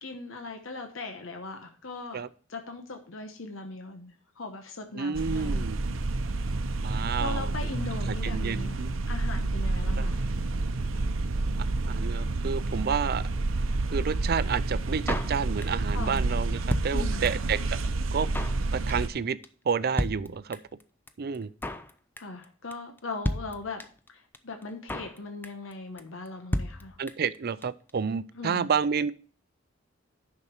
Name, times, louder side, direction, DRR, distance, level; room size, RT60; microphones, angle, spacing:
voice 1, 0.0-2.2 2.5-5.8 6.9-10.2 15.9-16.2 16.9-17.3 22.2-23.8 24.1-27.0 28.3-28.7, left 3 dB, 75° left, 5 dB, 1.1 m, -39 dB
voice 2, 5.0-5.8 6.8-7.5 8.2-8.9 10.0-10.1 11.8-13.2 13.9-17.8 18.1-18.3 18.7-19.4 19.7-20.6 21.2-21.5 27.0-29.1, right 6 dB, 50° right, 16 dB, 0.5 m, -30 dB
sound 1, 5.1-19.1, right 2 dB, 85° right, 0.7 m, -29 dB
Drum kit, 15.1-15.9 16.2-16.3 16.4-17.5 17.8-17.9 18.1-18.6 18.9-19.2 19.4-19.5 19.7-19.8 20.0-20.8 21.1-21.2 21.3-21.9 22.2-22.4 22.7-22.8 23.0-23.1 23.2-24.1 24.3-24.4 24.6-25.2 25.4-25.7 26.0-26.1 26.3-26.4 26.5-27.4 27.6-27.7 27.9-28.0, left 1 dB, 10° left, 0.6 m, -32 dB
9.9 x 6.0 x 4.4 m, 0.43 s
head